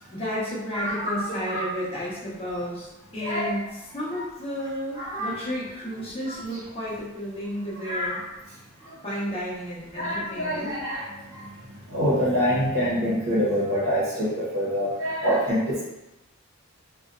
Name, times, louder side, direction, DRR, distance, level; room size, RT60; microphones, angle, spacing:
voice 1, 0.1-8.2 9.0-10.7, equal, 30° left, -8 dB, 0.8 m, -32 dB
voice 2, 0.7-1.1 1.5-1.6 3.2-3.5 5.0-5.4 7.8-8.2 9.9-11.1 11.9-15.8, equal, 70° right, -7 dB, 0.8 m, -25 dB
2.6 x 2.2 x 2.4 m, 0.96 s
head